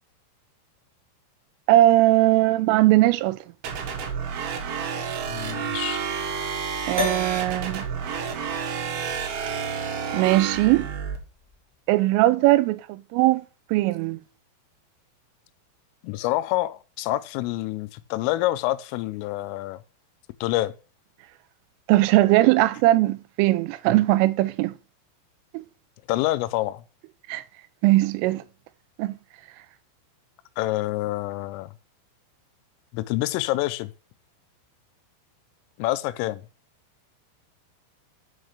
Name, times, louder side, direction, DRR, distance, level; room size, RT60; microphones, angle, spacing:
voice 1, 1.7-3.4 6.9-7.9 10.1-10.9 11.9-13.5 13.7-14.2 21.9-24.7 25.5-25.6 27.3-27.4 27.8-28.4 29.0-29.2, right 16 dB, 85° right, 3.2 m, -20 dB
sound 1, 3.6-11.2, right 6 dB, 65° right, 3.3 m, -30 dB
voice 2, 5.3-6.0 16.0-19.8 20.4-20.7 26.1-26.8 30.6-31.7 32.9-33.9 35.8-36.5, left 17 dB, 90° left, 3.2 m, -27 dB
sound 2, 7.0-11.5, left 2 dB, 15° right, 2.0 m, -36 dB
6.5 x 6.1 x 6.5 m
omnidirectional pair, 5.7 m